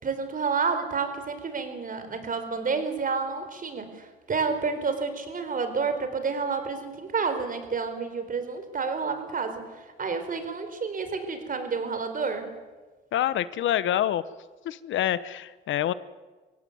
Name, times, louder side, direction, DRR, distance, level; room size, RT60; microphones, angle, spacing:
voice 1, 0.0-9.6 10.0-12.5, right 5 dB, 45° right, 8 dB, 4.4 m, -29 dB
voice 2, 13.1-14.2 14.6-15.9, left 11 dB, 75° left, 16 dB, 1.0 m, -26 dB
24.5 x 17.0 x 9.4 m, 1.3 s
cardioid pair, 90°, 20 cm